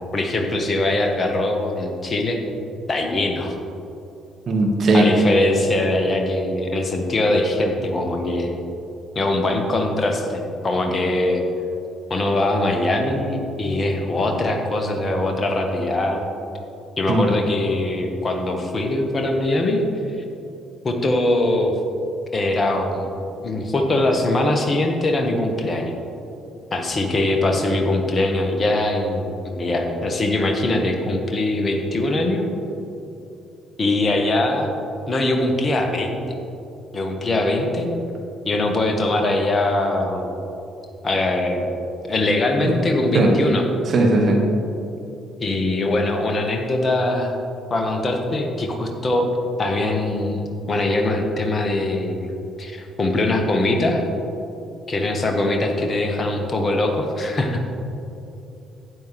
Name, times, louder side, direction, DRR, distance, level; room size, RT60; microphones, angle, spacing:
voice 1, 0.1-2.4 2.9-3.5 4.9-8.5 9.1-11.4 12.1-16.2 17.0-19.8 20.8-21.7 22.3-23.1 23.4-25.9 26.7-32.5 33.8-34.7 35.1-36.2 36.9-37.9 38.4-40.4 41.0-41.7 42.1-43.7 45.4-47.3 47.7-49.3 49.6-52.3 52.6-54.0 54.9-57.7, left 2 dB, 30° left, 3 dB, 1.4 m, -22 dB
voice 2, 4.5-5.1 17.1-17.3 42.6-42.7 43.1-43.3 43.9-44.4, right 2 dB, 45° right, 1 dB, 1.4 m, -17 dB
12.5 x 8.9 x 3.2 m, 2.8 s
figure-of-eight pair, 45°, 0 cm